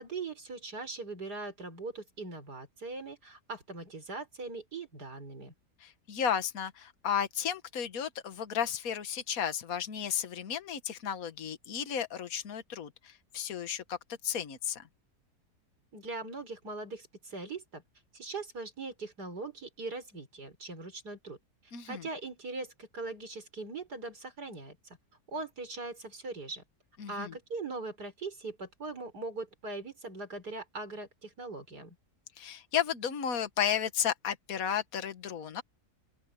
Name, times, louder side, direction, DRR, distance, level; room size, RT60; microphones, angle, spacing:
voice 1, 0.0-5.5 15.9-17.8 18.1-21.4 21.9-24.8 25.3-26.6 27.1-32.0, right 3 dB, 80° right, 5.6 m, -40 dB
voice 2, 5.8-14.0 14.2-14.9 21.7-22.1 27.0-27.4 32.4-35.6, left 8 dB, 60° left, 1.8 m, -33 dB
open air
omnidirectional pair, 1.7 m